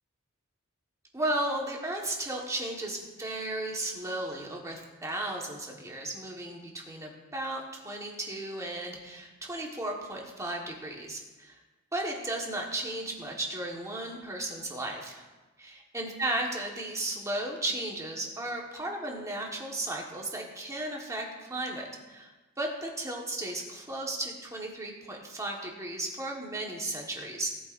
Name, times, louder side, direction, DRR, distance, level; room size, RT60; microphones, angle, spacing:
voice 1, 1.1-11.6 11.9-15.2 15.6-22.3 22.6-27.5, right 1 dB, 15° right, -1 dB, 1.4 m, -35 dB
17.5 x 8.0 x 2.6 m, 1.2 s
head